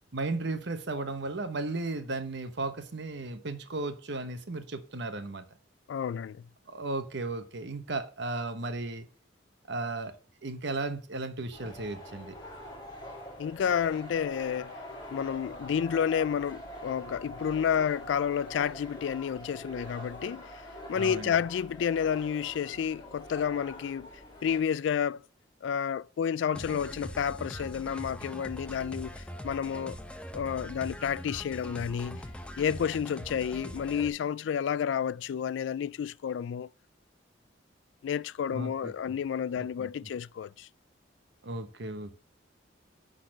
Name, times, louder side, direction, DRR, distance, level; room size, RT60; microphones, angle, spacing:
voice 1, 0.1-5.4 6.7-9.1 9.7-10.2 10.4-12.3 20.9-21.3 38.5-39.2 39.6-40.1 41.4-42.1, right 2 dB, 65° right, 1.1 m, -35 dB
voice 2, 5.9-6.4 13.4-14.7 15.1-20.6 20.9-24.1 24.4-25.2 25.6-30.0 30.3-32.2 32.6-36.7 38.0-40.7, left 8 dB, 70° left, 0.3 m, -30 dB
sound 1, 11.5-24.6, equal, 25° left, 2.8 m, -44 dB
sound 2, 26.5-34.1, equal, 5° left, 0.8 m, -42 dB
10.5 x 4.1 x 6.4 m
head